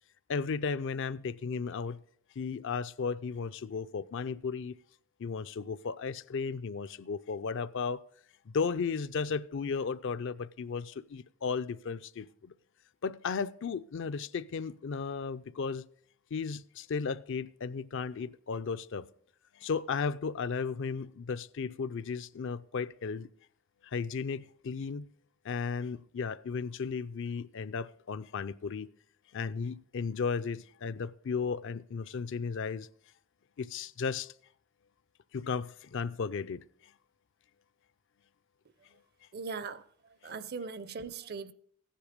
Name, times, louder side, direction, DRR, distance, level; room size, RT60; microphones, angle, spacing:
voice 1, 0.3-2.0 2.4-4.7 5.2-8.0 8.5-12.5 13.0-15.9 16.3-19.1 19.5-23.3 23.8-25.1 25.4-28.9 29.3-32.9 33.6-34.3 35.3-36.6 40.2-40.3, left 5 dB, 60° left, 0.5 m, -35 dB
voice 2, 39.3-39.9 40.2-41.5, right 5 dB, 50° right, 0.6 m, -39 dB
15.0 x 10.0 x 5.1 m
head